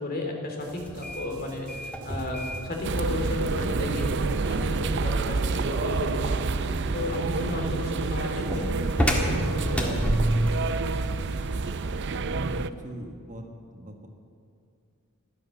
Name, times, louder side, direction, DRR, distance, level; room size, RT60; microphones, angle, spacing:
voice 1, 0.0-6.3 6.9-10.0, left 2 dB, 40° left, 2 dB, 2.9 m, -34 dB
sound 1, 0.6-11.9, right 3 dB, 85° right, 2.7 m, -51 dB
sound 2, 0.8-10.7, equal, 5° left, 1.6 m, -31 dB
sound 3, 2.8-12.7, right 4 dB, 55° right, 0.5 m, -28 dB
voice 2, 10.8-11.2 12.1-13.4 13.7-14.1, right 1 dB, 35° right, 3 dB, 1.4 m, -40 dB
15.5 x 12.0 x 7.1 m, 2.4 s
head